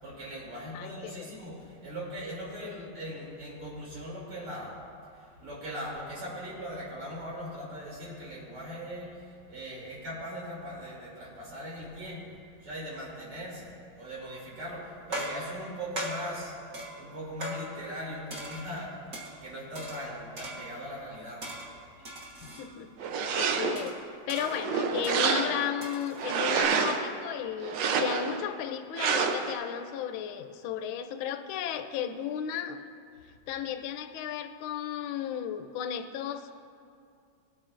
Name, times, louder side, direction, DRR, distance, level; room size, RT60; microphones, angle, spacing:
voice 1, 0.0-4.8 5.4-9.2 9.5-12.4 12.6-13.7 14.0-16.5 17.0-18.9 19.4-21.4, equal, 90° right, -6 dB, 3.7 m, -40 dB
voice 2, 0.7-1.3 2.6-3.0 22.4-24.0 24.3-32.8 33.5-36.5, left 9 dB, 80° left, 7 dB, 1.4 m, -34 dB
sound 1, 14.2-14.6 15.1-18.0 18.3-19.4 19.7-20.9 21.4-22.7 23.2-23.3 23.7-26.6, right 1 dB, 45° right, 1.7 m, -41 dB
sound 2, 23.0-23.9 24.4-25.8 26.2-27.1 27.6-28.4 29.0-29.5, right 5 dB, 70° right, 1.3 m, -28 dB
18.0 x 8.5 x 2.5 m, 2.4 s
omnidirectional pair, 2.3 m